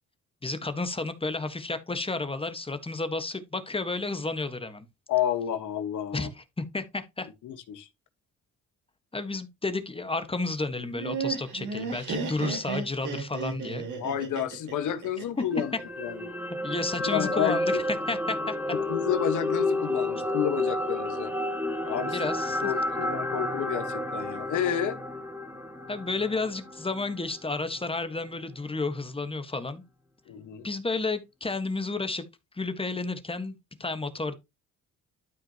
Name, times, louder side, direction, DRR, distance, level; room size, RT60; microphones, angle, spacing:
voice 1, 0.4-4.9 6.1-7.3 9.1-13.9 15.4-15.5 16.6-18.6 22.0-22.7 25.9-29.8 30.6-32.2 32.5-33.5 33.8-34.3, left 3 dB, 20° left, 1.4 m, -31 dB
voice 2, 5.1-6.3 7.4-7.9 14.0-15.7 16.0-16.3 17.1-17.6 18.7-21.3 21.9-22.1 22.6-25.0 30.3-30.7, left 9 dB, 80° left, 1.5 m, -30 dB
Laughter, 10.8-15.8, right 5 dB, 75° right, 3.5 m, -34 dB
sound 1, 15.5-27.8 28.2-28.3, left 1 dB, 5° right, 2.7 m, -31 dB
12.5 x 4.9 x 2.9 m
cardioid pair, 90°, 30 cm